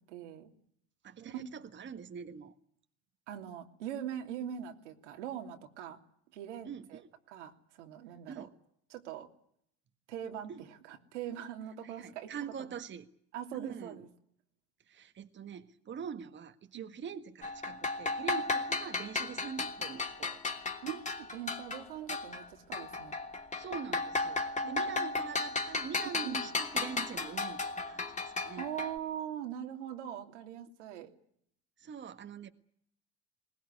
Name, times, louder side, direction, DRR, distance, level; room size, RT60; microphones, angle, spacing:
voice 1, 0.1-0.5 1.2-1.5 3.3-6.0 6.3-7.0 7.3-8.5 8.9-9.3 10.1-12.3 13.3-14.1 16.7-16.9 20.8-23.1 24.6-25.2 26.1-26.5 28.6-31.1, right 10 dB, 85° right, 3.0 m, -42 dB
voice 2, 1.0-2.5 6.6-7.1 8.3-8.5 10.5-10.6 11.8-13.1 13.5-14.0 14.9-20.4 23.6-28.7 31.8-32.5, right 7 dB, 30° right, 1.6 m, -44 dB
sound 1, 17.4-22.5 22.7-28.9, left 3 dB, 20° left, 3.0 m, -35 dB
21.5 x 20.0 x 9.8 m
hypercardioid pair, 85°, 35 cm